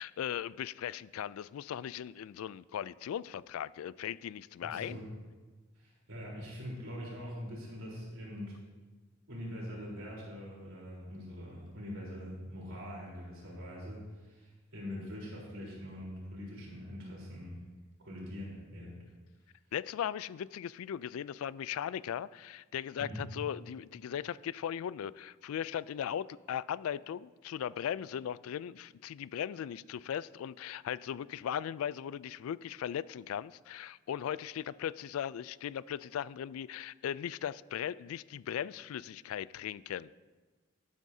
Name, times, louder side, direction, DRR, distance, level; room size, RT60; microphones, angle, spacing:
voice 1, 0.0-5.0 19.7-40.1, left 9 dB, 85° left, 18 dB, 0.3 m, -38 dB
voice 2, 4.6-5.1 5.8-8.5 9.3-17.6 18.0-19.0 23.0-23.3, equal, 80° right, -3 dB, 3.8 m, -43 dB
12.0 x 12.0 x 2.7 m, 1.3 s
head